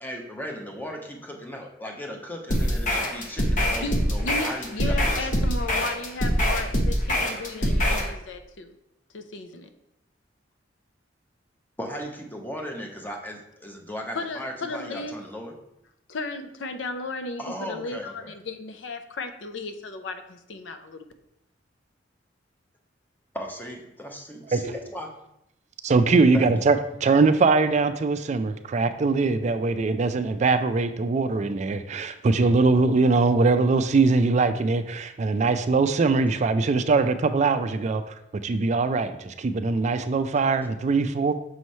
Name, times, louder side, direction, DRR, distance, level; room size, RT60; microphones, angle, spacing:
voice 1, 0.0-5.3 11.8-15.5 17.4-18.3 23.3-25.1 26.3-26.5, equal, 10° left, 0.9 m, -37 dB
sound 1, 2.5-8.1, equal, 45° left, 1.0 m, -24 dB
voice 2, 3.8-8.8 9.1-9.7 14.1-15.2 16.1-21.1, left 2 dB, 80° left, 0.6 m, -35 dB
voice 3, 25.8-38.1 38.4-41.3, right 3 dB, 40° right, 0.3 m, -22 dB
6.2 x 3.1 x 5.4 m
head